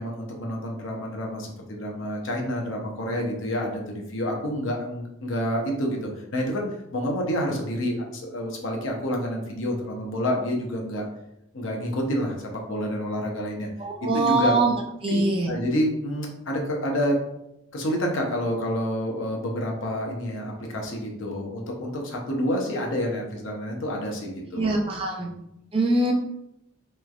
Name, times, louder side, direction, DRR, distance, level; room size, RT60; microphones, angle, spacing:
voice 1, 0.0-6.7 6.9-11.0 11.5-12.4 12.7-13.7 14.0-14.5 15.1-15.2 15.5-17.2 17.7-24.7 25.2-25.3, equal, 70° left, 0 dB, 0.7 m, -28 dB
voice 2, 13.8-14.7 15.0-15.5 24.5-25.3 25.7-26.1, right 2 dB, 25° right, 1 dB, 0.4 m, -23 dB
3.1 x 3.1 x 2.4 m, 0.83 s
head